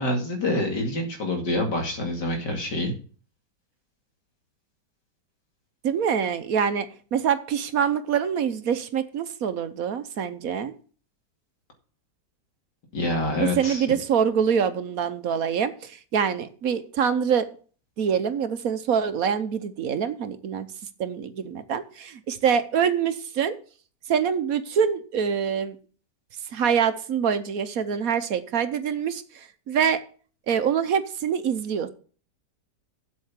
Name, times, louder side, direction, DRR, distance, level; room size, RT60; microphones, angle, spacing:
voice 1, 0.0-2.9 12.9-13.9, left 1 dB, 90° left, 2 dB, 3.0 m, -26 dB
voice 2, 5.8-10.7 13.4-17.5 18.0-20.7 21.0-23.5 24.1-25.8 26.5-30.0 30.5-31.9, right 7 dB, 60° right, 11 dB, 1.2 m, -25 dB
8.1 x 7.6 x 7.3 m, 0.42 s
omnidirectional pair, 1.8 m